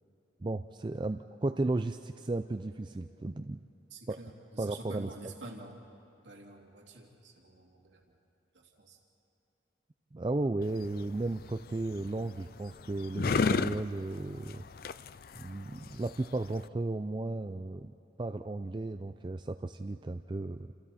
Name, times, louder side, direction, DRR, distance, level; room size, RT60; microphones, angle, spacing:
voice 1, 0.4-3.6 4.1-4.2 4.6-5.1 10.1-14.6 15.3-17.9 18.2-20.7, right 2 dB, 25° right, 8 dB, 0.4 m, -34 dB
voice 2, 3.9-8.0 8.5-9.0, right 2 dB, 90° right, 0 dB, 2.6 m, -49 dB
sound 1, 10.6-16.7, left 4 dB, 55° left, 0.4 m, -35 dB
29.0 x 28.0 x 4.2 m, 2.9 s
head